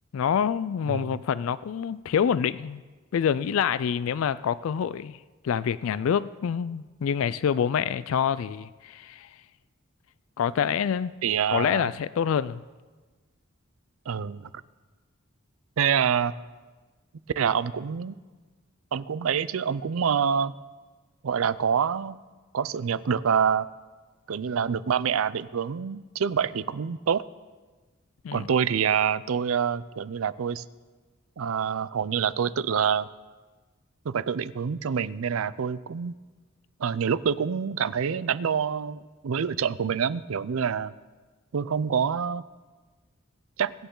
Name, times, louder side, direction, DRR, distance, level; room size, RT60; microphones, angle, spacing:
voice 1, 0.1-2.8 3.1-5.2 5.4-9.3 10.4-11.1 11.5-12.6 28.2-28.5, left 8 dB, 80° left, 17 dB, 0.3 m, -26 dB
voice 2, 11.2-11.9 14.1-14.5 15.8-16.3 17.4-18.1 18.9-20.5 21.2-22.2 22.5-23.7 24.3-27.2 28.3-30.6 31.4-33.1 34.0-36.1 36.8-40.9 41.5-42.4 43.6-43.7, right 7 dB, 85° right, 17 dB, 0.5 m, -26 dB
22.5 x 9.3 x 3.8 m, 1.3 s
head